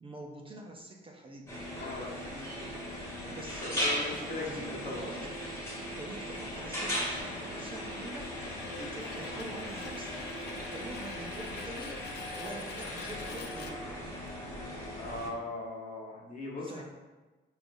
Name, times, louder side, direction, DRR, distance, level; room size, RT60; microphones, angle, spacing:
voice 1, 0.0-1.7 3.2-5.4 5.9-12.1 12.4-14.1 16.6-16.8, right 2 dB, 25° right, 0 dB, 0.5 m, -46 dB
sound 1, 1.5-15.3, equal, 15° left, 1.3 m, -38 dB
voice 2, 1.8-2.5 3.2-3.3 3.6-5.1 14.9-16.8, left 2 dB, 40° left, -3 dB, 1.1 m, -39 dB
sound 2, 3.7-14.3, left 5 dB, 60° left, 0.4 m, -47 dB
4.6 x 3.2 x 2.6 m, 1.2 s
cardioid pair, 90°, 20 cm